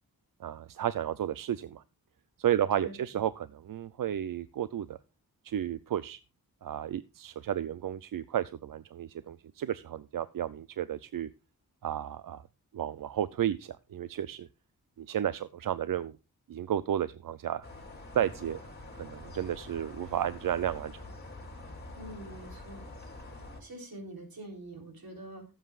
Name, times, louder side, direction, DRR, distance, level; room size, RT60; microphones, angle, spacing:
voice 1, 0.4-1.8 2.4-5.0 5.4-6.2 6.6-11.3 11.8-12.4 12.7-14.5 15.0-16.2 16.5-17.7 18.1-21.0, right 10 dB, 65° right, 15 dB, 0.5 m, -32 dB
sound 1, 17.6-23.6, left 2 dB, 25° left, 3.1 m, -46 dB
voice 2, 21.9-22.8 23.6-25.5, right 1 dB, 80° right, 2 dB, 3.7 m, -45 dB
17.5 x 7.9 x 2.4 m, 0.30 s
wide cardioid pair, 125°, 36 cm